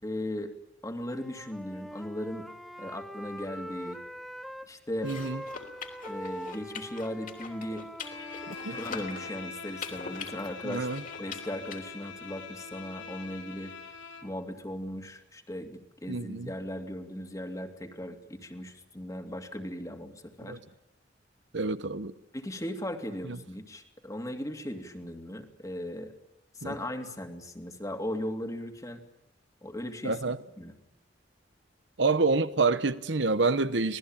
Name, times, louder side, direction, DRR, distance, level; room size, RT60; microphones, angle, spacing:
voice 1, 0.0-0.5 0.8-2.5 2.8-4.0 4.7-5.1 6.1-7.8 8.7-10.9 11.2-13.7 14.2-20.6 22.3-26.1 26.5-29.0 29.6-30.2 30.6-30.7, left 1 dB, 20° left, 2.4 m, -37 dB
Wind instrument woodwind instrument, 1.1-4.7 5.0-9.3, equal, ahead, 0.8 m, -43 dB
sound 1, 5.0-11.8, left 5 dB, 45° left, 3.3 m, -43 dB
voice 2, 5.0-5.4 8.5-8.8 10.6-11.0 16.1-16.5 20.4-20.6 21.5-22.1 23.2-23.4 26.6-26.8 30.0-30.4 32.0-34.0, right 3 dB, 70° right, 1.0 m, -28 dB
Bowed string instrument, 8.0-14.4, left 4 dB, 80° left, 3.0 m, -43 dB
26.0 x 18.5 x 8.9 m
head